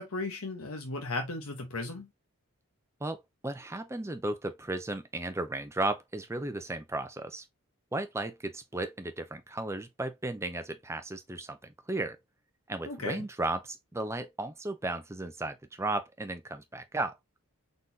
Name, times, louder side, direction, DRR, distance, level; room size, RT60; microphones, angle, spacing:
voice 1, 0.0-2.1 12.8-13.3, left 2 dB, 70° left, 1.0 m, -36 dB
voice 2, 3.0-7.4 7.9-12.2 12.7-17.1, right 2 dB, 10° right, 0.6 m, -35 dB
4.0 x 3.9 x 2.7 m
head